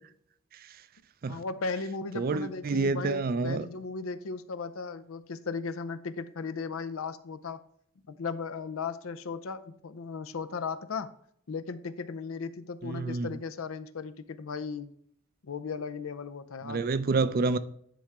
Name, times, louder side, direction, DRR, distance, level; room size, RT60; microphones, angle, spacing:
voice 1, 1.3-7.6 8.1-11.1 11.5-14.9 15.4-16.9, left 4 dB, 90° left, 0.6 m, -36 dB
voice 2, 2.2-3.7 12.8-13.3 16.6-17.6, right 3 dB, 45° right, 0.4 m, -28 dB
10.0 x 3.4 x 4.8 m
head